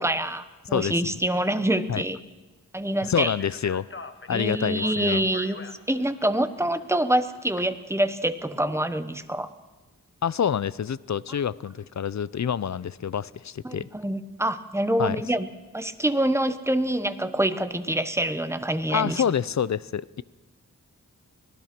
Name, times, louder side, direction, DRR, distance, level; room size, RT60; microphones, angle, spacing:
voice 1, 0.0-2.2 2.7-3.3 4.3-5.6 5.9-9.5 13.6-19.2, right 1 dB, 10° right, 10 dB, 1.0 m, -26 dB
voice 2, 0.7-1.2 1.9-2.0 3.0-3.9 4.3-5.2 10.2-13.9 15.0-15.2 18.9-20.2, left 8 dB, 55° left, 19 dB, 0.6 m, -27 dB
Speech, 3.0-7.6, left 3 dB, 35° left, 1.2 m, -44 dB
24.5 x 18.5 x 6.0 m, 1.2 s
wide cardioid pair, 100°, 33 cm